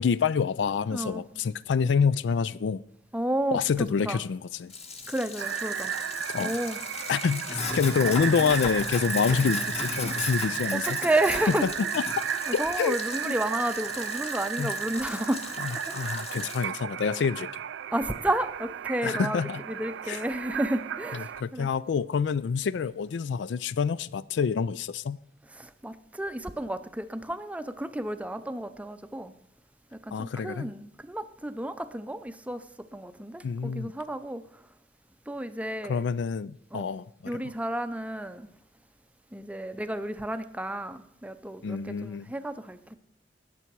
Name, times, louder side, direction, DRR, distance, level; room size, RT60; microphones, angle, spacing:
voice 1, 0.0-2.8 3.5-4.7 6.3-6.5 7.1-11.0 12.5-13.0 13.2-13.3 14.6-14.7 15.6-17.5 19.0-19.6 20.1-20.2 21.1-25.2 30.1-30.7 33.4-33.9 35.9-37.4 41.6-42.3, left 6 dB, 75° left, 0.4 m, -27 dB
voice 2, 0.9-1.2 3.1-4.2 5.1-5.9 6.4-6.8 10.7-11.7 12.5-16.1 17.9-19.4 19.7-21.7 25.5-29.3 29.9-34.5 35.3-36.1 36.7-36.9 37.3-38.5 39.3-43.0, right 1 dB, 10° right, 0.6 m, -32 dB
Sink (filling or washing), 4.7-16.6, left 4 dB, 35° left, 1.4 m, -36 dB
sound 1, 5.4-21.4, right 9 dB, 85° right, 0.4 m, -34 dB
18.5 x 6.9 x 4.6 m
head